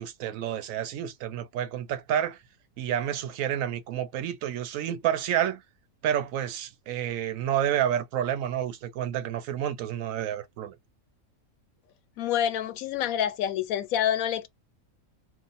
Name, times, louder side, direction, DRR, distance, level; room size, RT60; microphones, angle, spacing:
voice 1, 0.0-2.4 2.8-5.6 6.0-10.7, right 10 dB, 75° right, 1.0 m, -29 dB
voice 2, 12.2-14.5, left 10 dB, 85° left, 1.0 m, -27 dB
2.5 x 2.4 x 3.9 m
omnidirectional pair, 1.5 m